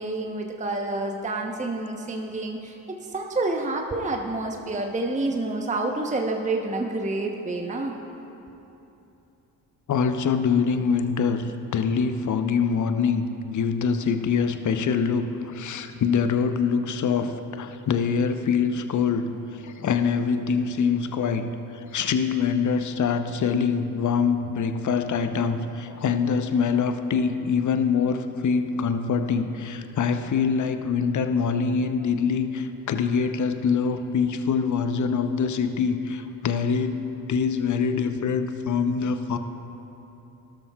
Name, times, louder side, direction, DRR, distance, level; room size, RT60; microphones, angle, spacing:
voice 1, 0.0-8.0, right 2 dB, 15° right, 2 dB, 1.0 m, -28 dB
voice 2, 9.9-39.4, left 6 dB, 40° left, 8 dB, 0.8 m, -24 dB
18.0 x 12.5 x 2.4 m, 3.0 s
hypercardioid pair, 45°, 47 cm